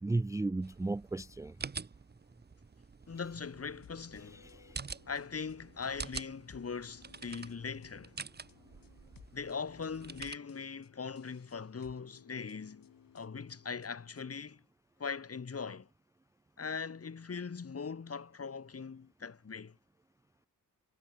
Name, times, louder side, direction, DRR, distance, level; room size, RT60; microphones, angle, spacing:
voice 1, 0.0-1.6 4.3-4.8, right 2 dB, 10° right, 0.4 m, -35 dB
sound 1, 0.6-10.4, right 5 dB, 30° right, 0.9 m, -47 dB
voice 2, 3.1-4.5 5.1-8.2 9.3-12.9 13.1-14.6 15.0-15.9 16.6-19.8, left 5 dB, 45° left, 3.0 m, -41 dB
sound 2, 3.8-14.5, left 8 dB, 75° left, 3.7 m, -61 dB
wide cardioid pair, 125°, 34 cm